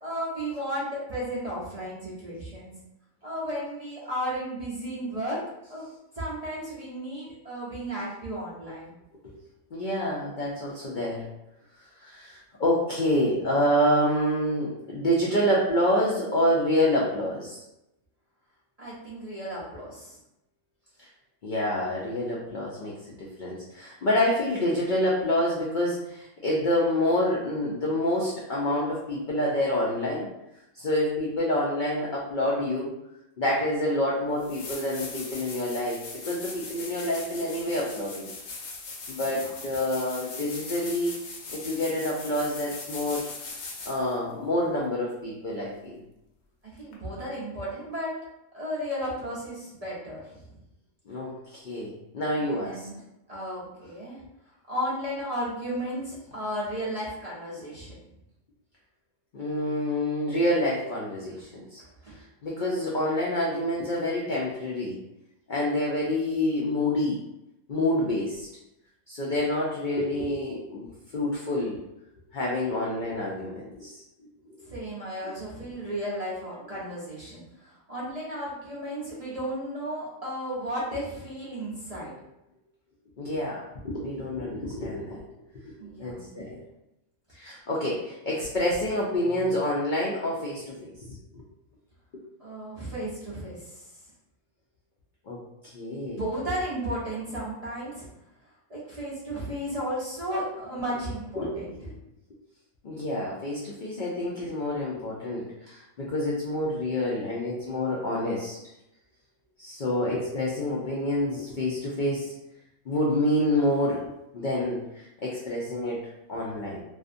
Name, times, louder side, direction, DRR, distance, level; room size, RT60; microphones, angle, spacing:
voice 1, 0.0-2.7 3.2-5.4 5.7-5.9 6.1-9.0 18.8-20.2 39.3-39.5 46.6-48.2 48.5-50.3 52.5-53.0 53.3-54.2 54.7-58.0 61.8-62.2 74.6-82.1 85.8-86.3 92.4-93.9 96.0-98.1 98.7-101.7, equal, 45° right, -8 dB, 0.5 m, -34 dB
voice 2, 9.7-11.3 12.0-17.6 21.0-21.1 21.4-30.3 30.7-32.9 33.4-38.3 39.1-41.1 41.5-43.3 43.9-46.0 51.1-52.9 59.3-61.8 62.1-65.0 65.5-67.2 67.7-68.5 69.1-71.8 72.3-74.0 74.4-74.6 75.2-75.3 83.2-85.2 85.5-85.6 86.0-86.6 87.3-91.2 95.3-96.2 101.4-101.5 101.8-102.0 102.8-108.6 109.6-112.3 112.9-114.0 114.3-116.0 116.3-116.8, left 1 dB, 80° left, -4 dB, 0.4 m, -27 dB
sound 1, 33.9-34.0 34.4-44.1 46.9-47.0, left 3 dB, 65° left, 0.8 m, -40 dB
2.4 x 2.4 x 2.5 m, 0.89 s
omnidirectional pair, 1.4 m